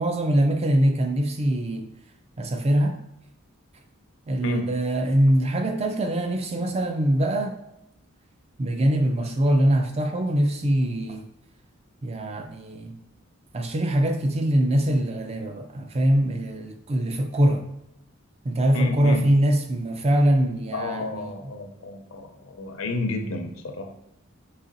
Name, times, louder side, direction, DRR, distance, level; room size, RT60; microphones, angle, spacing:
voice 1, 0.0-1.9 2.4-3.0 4.3-7.6 8.6-11.3 12.0-13.0 13.5-17.7 18.4-21.3, right 1 dB, 30° right, 0.4 m, -23 dB
voice 2, 18.7-19.3 20.7-23.9, left 2 dB, 75° left, 0.6 m, -31 dB
4.1 x 2.9 x 3.9 m
head